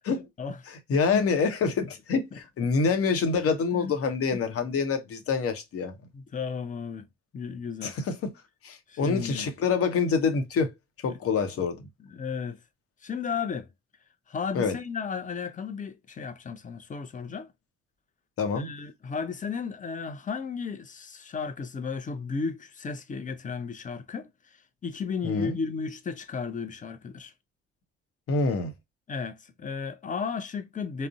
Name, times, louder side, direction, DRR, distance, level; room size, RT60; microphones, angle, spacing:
voice 1, 0.7-6.0 7.8-8.3 8.6-10.7 11.0-11.9 14.5-14.7 18.4-18.7 25.2-25.6 28.3-28.7, left 5 dB, 45° left, 0.9 m, -26 dB
voice 2, 6.1-7.1 7.3-7.9 8.9-9.5 11.1-11.2 12.1-12.6 13.0-13.7 14.3-17.5 18.5-24.3 24.8-27.3 29.1-31.1, left 5 dB, 25° left, 0.6 m, -34 dB
3.7 x 2.1 x 2.3 m
figure-of-eight pair, 50°, 31 cm